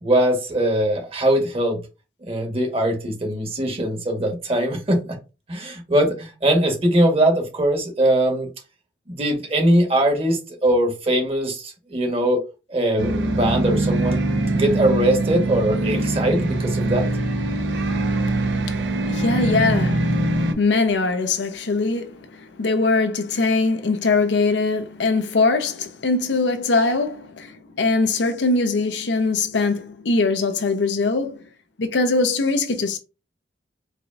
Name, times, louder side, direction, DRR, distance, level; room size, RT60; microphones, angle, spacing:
voice 1, 0.0-1.8 2.3-5.0 5.5-8.5 9.1-12.4 12.7-14.2 14.5-17.1, right 1 dB, 35° right, 1.1 m, -21 dB
sound 1, 13.0-20.5, right 2 dB, 85° right, 0.6 m, -23 dB
voice 2, 18.3-31.4 31.8-33.0, left 3 dB, 90° left, 0.6 m, -22 dB
4.8 x 2.6 x 2.4 m
head